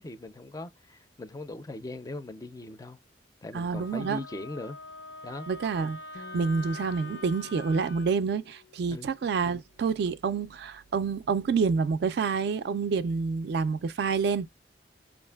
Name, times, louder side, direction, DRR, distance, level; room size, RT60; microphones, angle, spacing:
voice 1, 0.0-3.0 3.4-4.8 5.2-5.5 8.9-9.1, left 2 dB, 20° left, 0.4 m, -40 dB
voice 2, 3.5-4.2 5.5-6.0 6.3-14.5, right 5 dB, 60° right, 0.3 m, -28 dB
Wind instrument woodwind instrument, 3.7-8.1, left 2 dB, 65° left, 0.6 m, -44 dB
Acoustic guitar, 6.1-9.9, left 5 dB, 90° left, 0.9 m, -52 dB
5.4 x 2.5 x 2.2 m
head